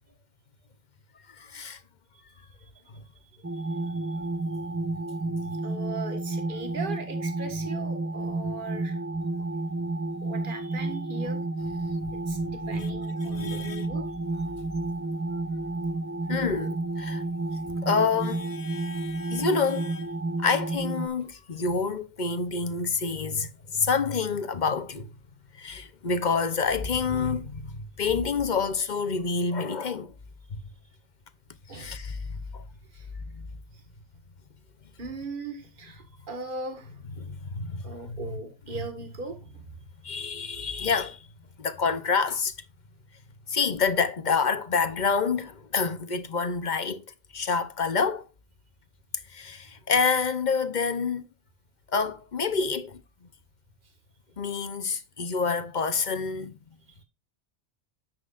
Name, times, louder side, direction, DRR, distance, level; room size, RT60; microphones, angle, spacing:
voice 1, 1.3-1.8 5.3-5.5 11.9-12.1 12.4-12.9 13.2-13.9 16.3-17.2 17.8-20.1 20.4-25.1 25.5-30.1 30.5-30.6 31.7-32.6 33.2-33.5 37.2-38.2 40.0-41.3 41.6-42.5 43.5-47.0 47.3-48.3 49.3-51.3 51.9-53.0 54.4-56.6, left 5 dB, 45° left, 0.9 m, -28 dB
sound 1, 3.4-21.1, right 2 dB, 20° right, 0.3 m, -31 dB
voice 2, 3.5-4.1 5.6-9.0 10.2-11.4 12.1-14.0 31.7-31.9 32.9-33.1 35.0-37.0 37.8-39.6 56.9-57.0, right 3 dB, 45° right, 1.8 m, -39 dB
9.9 x 7.6 x 2.5 m
omnidirectional pair, 1.2 m